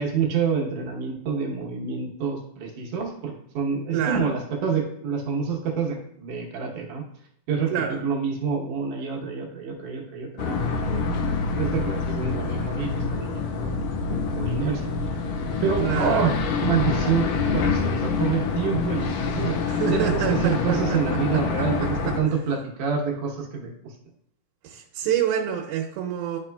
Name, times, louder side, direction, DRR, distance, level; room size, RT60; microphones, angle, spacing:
voice 1, 0.0-7.0 7.5-11.0 11.6-13.7 14.1-14.9 15.6-16.3 16.6-17.2 17.5-23.9, right 6 dB, 70° right, 0 dB, 2.2 m, -27 dB
voice 2, 3.9-4.3 7.7-8.0 15.8-16.4 19.6-21.2 21.6-21.7 22.0-22.1 24.6-26.4, right 9 dB, 85° right, 0 dB, 2.6 m, -27 dB
sound 1, 10.4-22.2, left 4 dB, 85° left, 1.9 m, -26 dB
11.5 x 4.3 x 2.2 m, 0.70 s
omnidirectional pair, 4.3 m